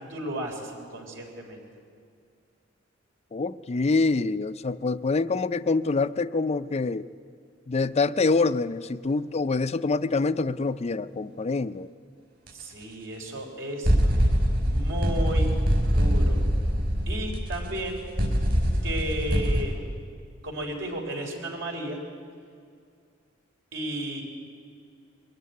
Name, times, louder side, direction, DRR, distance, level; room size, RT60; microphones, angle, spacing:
voice 1, 0.0-1.7 12.5-13.9 14.6-15.5 15.9-16.4 17.1-18.0 18.8-19.8 20.4-22.0 23.7-24.2, right 1 dB, 70° right, 1 dB, 3.9 m, -33 dB
voice 2, 3.3-7.1 7.7-11.9, left 3 dB, 35° left, 14 dB, 0.5 m, -25 dB
sound 1, 12.5-12.6 13.8-19.6, equal, 55° right, 3.9 m, -24 dB
22.5 x 13.5 x 9.5 m, 2.3 s
head